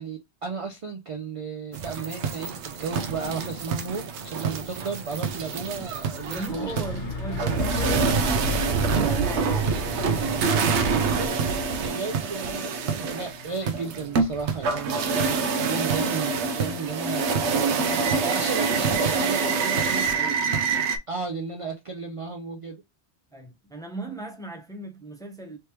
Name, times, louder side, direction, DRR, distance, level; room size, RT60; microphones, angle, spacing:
voice 1, 0.0-6.7 11.5-20.1 21.1-22.8, right 4 dB, 55° right, 0.3 m, -34 dB
sound 1, 1.7-21.0, right 5 dB, 80° right, 0.9 m, -26 dB
Truck, 4.2-16.6, left 6 dB, 85° left, 1.2 m, -38 dB
voice 2, 6.3-8.3 8.8-9.8 12.8-13.1 20.1-20.4 23.3-25.6, right 4 dB, 5° left, 0.5 m, -36 dB
3.2 x 3.2 x 2.9 m
omnidirectional pair, 1.2 m